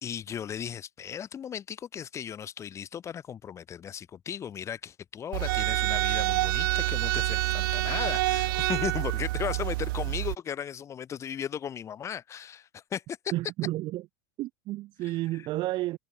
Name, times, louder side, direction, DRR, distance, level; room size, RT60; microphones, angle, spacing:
voice 1, 0.0-13.2, left 8 dB, 25° left, 3.6 m, -36 dB
sound 1, 5.3-10.4, right 19 dB, 65° right, 1.1 m, -27 dB
voice 2, 13.3-14.1 14.4-16.0, right 17 dB, 40° right, 7.6 m, -31 dB
supercardioid pair, 140°, 12 cm